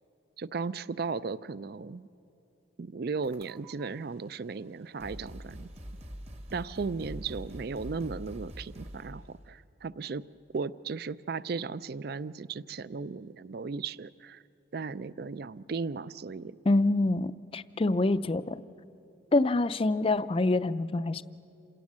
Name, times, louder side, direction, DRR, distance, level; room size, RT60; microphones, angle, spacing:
voice 1, 0.4-2.1 2.8-5.7 6.5-10.2 10.5-14.4 14.7-16.6, right 4 dB, 50° right, 18 dB, 0.4 m, -36 dB
sound 1, 3.2-3.9 4.6-4.7 5.0-9.2, equal, 35° right, 1.3 m, -44 dB
voice 2, 16.7-18.6 19.3-21.2, left 2 dB, 30° left, 15 dB, 0.4 m, -26 dB
27.5 x 17.0 x 7.4 m, 2.7 s
head